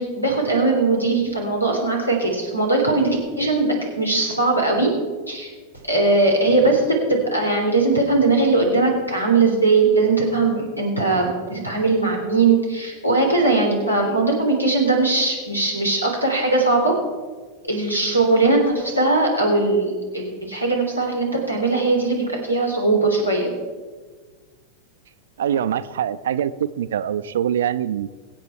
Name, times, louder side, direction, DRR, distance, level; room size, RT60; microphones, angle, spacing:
voice 1, 0.0-3.1 3.4-4.9 5.3-5.5 5.8-6.8 7.1-16.9 17.6-23.5, right 3 dB, 90° left, 1 dB, 3.4 m, -20 dB
voice 2, 25.4-28.1, right 9 dB, 60° right, 14 dB, 0.5 m, -24 dB
23.0 x 8.4 x 4.3 m, 1.5 s
figure-of-eight pair, 90°, 0 cm